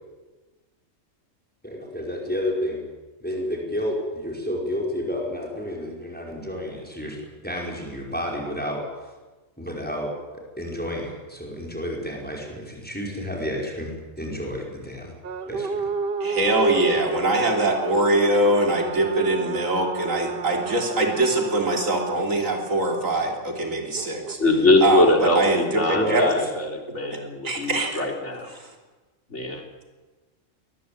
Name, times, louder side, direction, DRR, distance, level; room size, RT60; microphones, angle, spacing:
voice 1, 1.6-2.8 3.2-7.2 7.4-8.8 9.6-10.1 10.6-15.1 15.5-15.8 25.9-26.4, equal, 5° left, -1 dB, 5.2 m, -30 dB
sound 1, 15.2-22.2 24.0-25.1, right 5 dB, 50° right, 1.0 m, -31 dB
voice 2, 16.2-24.4 24.8-26.2 26.9-27.2 27.4-28.1 28.5-28.7, right 2 dB, 80° right, 2 dB, 3.7 m, -23 dB
voice 3, 24.4-28.5 29.3-29.6, left 2 dB, 60° left, 3 dB, 3.7 m, -22 dB
22.5 x 19.5 x 8.7 m, 1.2 s
omnidirectional pair, 1.4 m